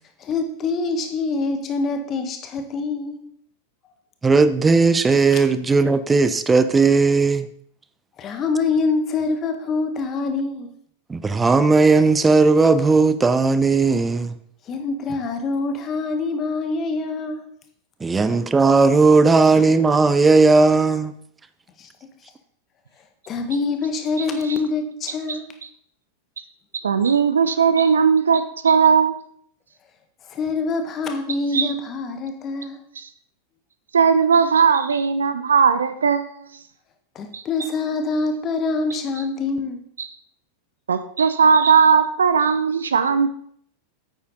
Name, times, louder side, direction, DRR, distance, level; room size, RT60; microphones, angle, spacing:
voice 1, 0.2-3.3 5.3-5.4 8.2-10.7 14.7-17.4 18.3-18.4 19.6-19.7 21.8-21.9 23.3-25.5 30.3-32.8 37.1-39.8, left 3 dB, 30° left, 6 dB, 1.5 m, -25 dB
voice 2, 4.2-7.5 11.1-14.3 18.0-21.1, right 4 dB, 15° right, 13 dB, 0.6 m, -16 dB
voice 3, 26.8-29.2 31.5-31.7 33.0-33.1 33.9-36.3 37.3-37.4 40.0-40.1 40.9-43.3, right 6 dB, 70° right, 11 dB, 0.7 m, -18 dB
9.4 x 8.4 x 4.0 m, 0.64 s
figure-of-eight pair, 90°, 0 cm